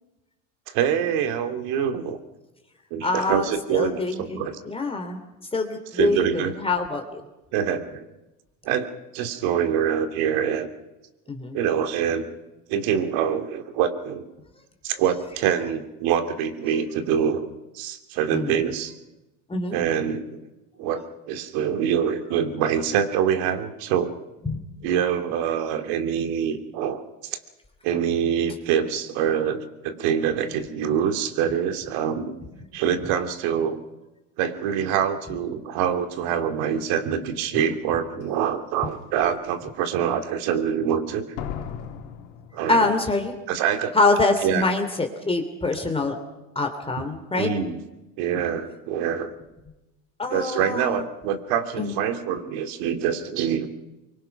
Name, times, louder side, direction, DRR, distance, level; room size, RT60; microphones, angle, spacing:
voice 1, 0.7-2.2 2.9-4.6 5.9-6.5 7.5-8.0 8.6-8.9 9.1-10.7 11.5-12.3 12.7-14.3 14.8-17.5 17.7-18.9 19.7-20.4 20.8-24.1 24.8-27.4 27.8-32.4 32.7-33.8 34.4-41.3 42.5-42.8 43.5-44.0 44.4-44.6 47.0-47.1 47.4-47.8 48.2-49.3 50.3-53.7, right 8 dB, 70° right, 7 dB, 2.8 m, -25 dB
voice 2, 3.0-5.2 5.5-7.2 11.3-11.6 18.3-18.6 19.5-19.8 24.4-24.6 42.7-43.4 43.9-46.2 46.5-47.5 50.2-51.1 51.8-52.0, left 3 dB, 15° left, 4 dB, 3.0 m, -25 dB
Slam, 38.2-38.3 38.9-39.3 41.4-43.3 43.5-43.6, left 8 dB, 90° left, 3.3 m, -37 dB
24.5 x 23.5 x 5.9 m, 1.0 s
supercardioid pair, 110°, 37 cm